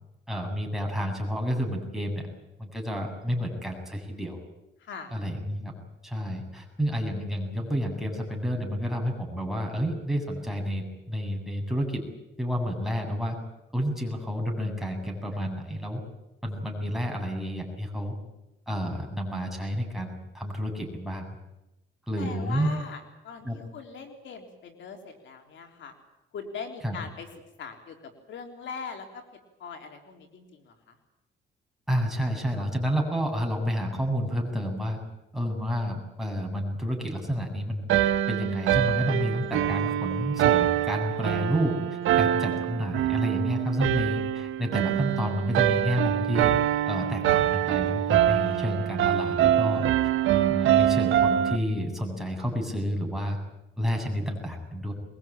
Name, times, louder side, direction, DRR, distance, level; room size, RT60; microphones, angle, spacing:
voice 1, 0.3-2.2 2.6-4.4 5.1-5.7 6.0-12.0 12.4-13.4 13.7-16.0 16.4-18.1 18.7-21.3 22.1-22.7 23.4-23.6 26.8-27.0 31.9-35.0 35.3-37.9 38.3-41.8 42.1-46.5 46.9-49.8 50.3-53.4 53.8-54.9, equal, ahead, 1 dB, 7.7 m, -30 dB
voice 2, 4.8-5.1 22.2-25.9 26.3-27.3 27.6-29.2 29.6-31.0 42.1-42.4, left 5 dB, 70° left, 4 dB, 3.6 m, -41 dB
sound 1, 37.9-51.6, right 12 dB, 80° right, 1.3 m, -24 dB
22.5 x 22.5 x 9.0 m, 0.93 s
cardioid pair, 90°, 20 cm